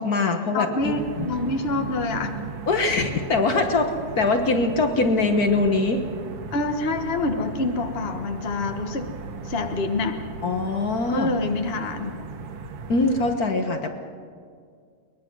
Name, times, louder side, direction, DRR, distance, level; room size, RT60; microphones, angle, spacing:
voice 1, 0.0-1.3 2.7-6.0 10.4-11.3 12.9-14.0, left 3 dB, 55° left, 6 dB, 1.0 m, -23 dB
voice 2, 0.5-2.3 6.5-9.1 9.4-10.2 11.1-12.1, left 2 dB, 80° left, 5 dB, 0.5 m, -26 dB
sound 1, 0.8-13.4, right 4 dB, 60° right, 2.0 m, -37 dB
22.5 x 20.5 x 6.2 m, 2.2 s
omnidirectional pair, 3.3 m